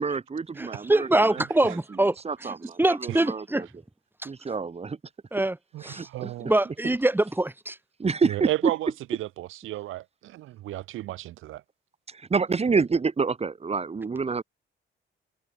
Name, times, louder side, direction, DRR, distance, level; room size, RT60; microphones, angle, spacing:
voice 1, 0.0-1.7 2.2-3.7 4.2-5.0 5.9-6.3 8.0-8.5 12.1-14.4, right 5 dB, 30° right, 2.5 m, -28 dB
voice 2, 0.6-2.2 2.4-3.7 4.2-4.3 5.3-5.6 5.8-6.1 6.4-7.8, right 1 dB, 10° right, 2.4 m, -24 dB
voice 3, 5.7-6.5 8.2-11.6, right 15 dB, 90° right, 5.5 m, -33 dB
cardioid pair, 90°, 20 cm